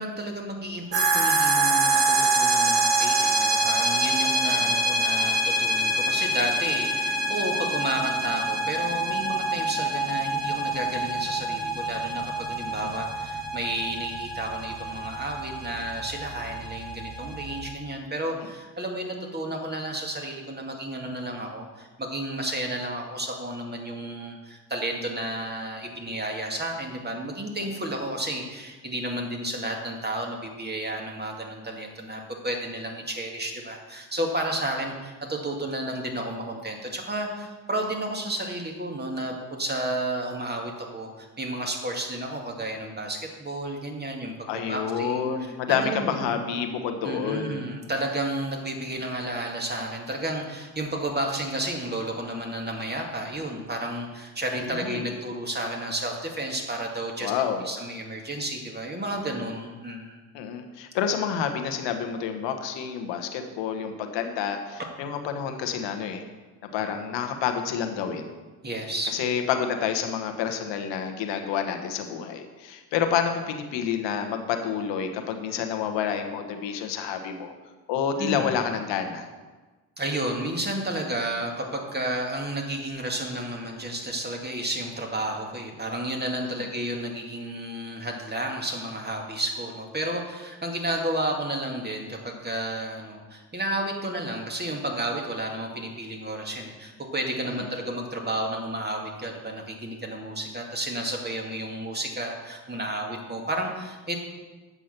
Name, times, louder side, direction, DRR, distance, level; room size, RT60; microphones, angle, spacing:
voice 1, 0.0-44.3 44.7-46.4 47.0-57.3 57.6-60.2 68.6-69.1 78.2-78.5 80.0-104.2, right 1 dB, 20° right, 1 dB, 2.2 m, -32 dB
sound 1, 0.9-17.7, right 2 dB, 70° right, 2.1 m, -26 dB
voice 2, 44.5-47.7 54.7-55.1 57.2-57.6 60.3-66.2 66.7-68.3 69.1-77.5 77.9-79.3 86.5-86.6, left 7 dB, 75° left, 6 dB, 1.2 m, -29 dB
8.0 x 6.1 x 5.8 m, 1.3 s
hypercardioid pair, 50°, 44 cm